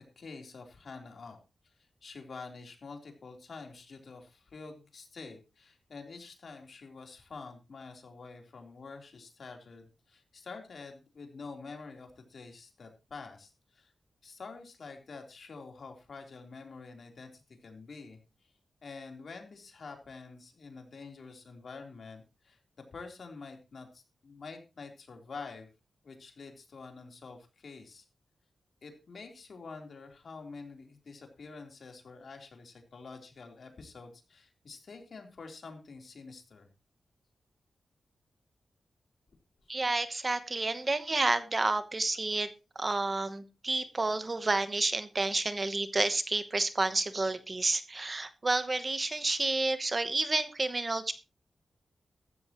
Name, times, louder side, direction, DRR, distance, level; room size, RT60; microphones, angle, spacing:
voice 1, 0.2-1.4 1.6-13.9 14.2-18.2 18.8-22.6 22.9-25.7 26.0-28.0 28.8-36.7, left 4 dB, 60° left, 3 dB, 3.6 m, -47 dB
voice 2, 39.7-42.5 42.7-51.1, right 2 dB, 30° right, 11 dB, 1.0 m, -30 dB
15.0 x 13.0 x 3.0 m, 0.30 s
wide cardioid pair, 120°, 0 cm